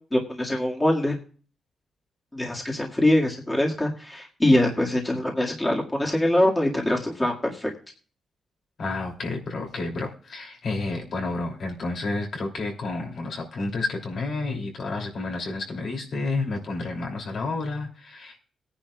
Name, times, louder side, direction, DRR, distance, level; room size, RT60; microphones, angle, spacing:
voice 1, 0.1-1.2 2.3-7.7, left 1 dB, 10° left, -1 dB, 1.9 m, -23 dB
voice 2, 8.8-18.4, left 3 dB, 55° left, 1 dB, 2.9 m, -30 dB
20.0 x 10.0 x 2.4 m, 0.42 s
cardioid pair, 140°, 0 cm